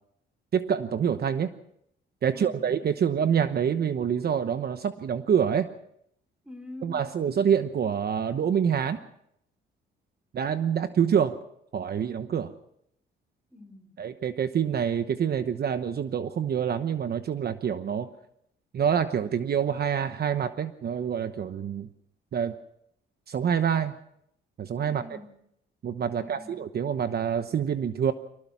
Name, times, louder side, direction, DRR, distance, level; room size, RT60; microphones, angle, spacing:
voice 1, 0.5-1.5 2.2-5.7 6.8-9.0 10.3-11.4 11.7-12.5 14.0-18.1 18.7-21.9 22.3-22.5 23.3-23.9 24.6-25.0 25.8-28.1, right 8 dB, 50° right, 10 dB, 1.0 m, -26 dB
voice 2, 6.4-7.1 13.5-14.0 24.9-25.4 26.1-26.6, left 1 dB, 5° right, 7 dB, 3.6 m, -45 dB
24.0 x 18.0 x 6.1 m, 0.74 s
cardioid pair, 90°, 20 cm